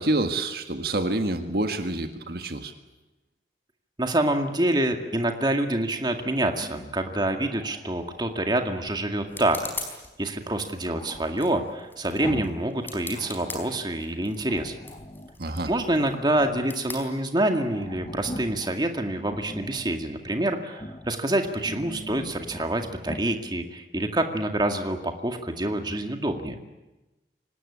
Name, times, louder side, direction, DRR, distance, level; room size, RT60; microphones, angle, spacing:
voice 1, 0.0-2.7 15.4-15.7, right 2 dB, 60° right, 7 dB, 1.7 m, -27 dB
voice 2, 4.0-9.6 10.2-14.7 15.7-26.6, right 1 dB, 25° right, 5 dB, 2.0 m, -26 dB
Growling, 6.5-8.5 10.9-12.7 13.0-13.9 14.5-15.4 15.8-16.8 17.1-17.2 17.4-18.7 19.2-20.0 20.7-21.1 21.5-22.7 23.0-23.3, left 1 dB, 30° left, 1.5 m, -41 dB
sound 1, 8.0-17.8, left 3 dB, 10° left, 4.6 m, -43 dB
25.5 x 19.0 x 9.9 m, 1.0 s
head